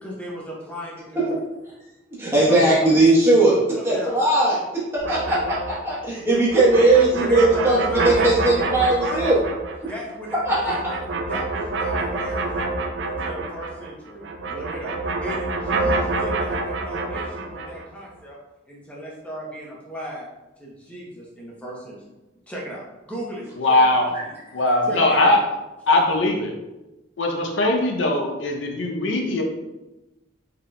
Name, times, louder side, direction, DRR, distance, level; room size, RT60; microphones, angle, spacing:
voice 1, 0.0-1.4 2.4-2.9 3.7-4.2 7.1-9.3 9.8-11.0 11.3-18.4 18.7-20.3 20.6-22.0 22.5-23.8 24.2-24.4 24.9-25.4, right 1 dB, 5° left, -5 dB, 0.7 m, -35 dB
voice 2, 2.2-3.6 3.8-4.6 4.9-9.4 10.5-10.7, right 2 dB, 15° right, -8 dB, 1.0 m, -18 dB
sound 1, 5.0-13.9 14.2-17.8, right 3 dB, 65° right, 0.4 m, -27 dB
voice 3, 23.6-24.1 24.5-25.4 25.9-26.5 27.2-29.4, left 2 dB, 75° left, 1 dB, 0.6 m, -20 dB
3.7 x 3.6 x 2.2 m, 1.0 s
head